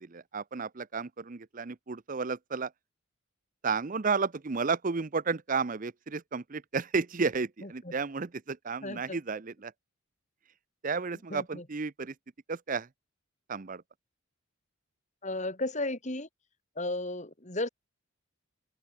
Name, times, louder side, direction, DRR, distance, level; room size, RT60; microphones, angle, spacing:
voice 1, 0.0-2.7 3.6-9.7 10.8-12.1 12.5-12.9 13.5-13.8, right 4 dB, 40° right, 0.6 m, -32 dB
voice 2, 8.8-9.2 11.3-11.6 15.2-16.3 16.8-17.7, left 2 dB, 35° left, 2.8 m, -34 dB
head